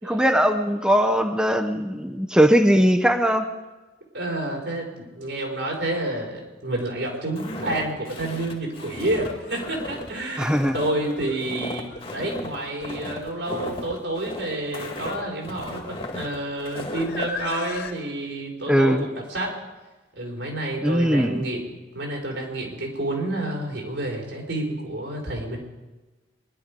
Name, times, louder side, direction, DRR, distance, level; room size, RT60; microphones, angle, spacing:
voice 1, 0.0-3.5 10.4-10.8 18.7-19.1 20.8-21.5, equal, 5° right, 6 dB, 0.7 m, -20 dB
voice 2, 4.1-11.9 12.1-19.6 20.2-21.6 21.9-25.6, right 1 dB, 85° right, -1 dB, 4.8 m, -29 dB
Walk footsteps, 7.4-17.3, left 1 dB, 30° left, 1.7 m, -36 dB
sound 1, 7.9-8.0 9.0-17.9, left 3 dB, 60° left, 2.4 m, -40 dB
24.0 x 11.5 x 5.3 m, 1.2 s
head